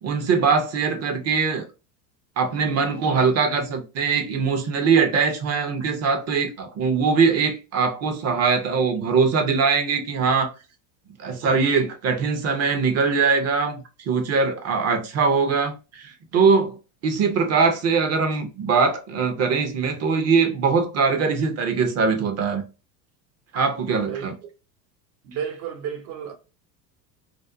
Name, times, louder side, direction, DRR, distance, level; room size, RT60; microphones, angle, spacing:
voice 1, 0.0-1.6 2.4-10.5 11.2-16.8 17.0-22.6 23.5-24.3, right 5 dB, 30° right, 0.6 m, -22 dB
voice 2, 25.2-26.3, right 8 dB, 70° right, 0.9 m, -32 dB
2.5 x 2.1 x 2.4 m
hypercardioid pair, 95°, 50 cm